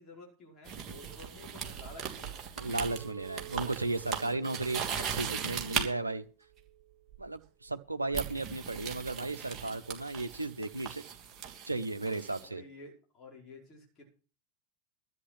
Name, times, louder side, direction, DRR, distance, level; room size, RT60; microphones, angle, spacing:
voice 1, 0.0-2.5 5.8-6.2 12.4-14.0, left 2 dB, 25° left, 5.1 m, -51 dB
sound 1, 0.7-5.9 7.1-7.4 8.1-12.5, right 7 dB, 30° right, 2.9 m, -38 dB
voice 2, 2.6-6.2 7.2-11.0 11.7-12.6, right 2 dB, 80° right, 1.0 m, -35 dB
Chink clink, 2.9-7.2 7.7-8.1, right 14 dB, 45° right, 2.5 m, -53 dB
13.0 x 9.1 x 6.0 m
figure-of-eight pair, 90°, 0 cm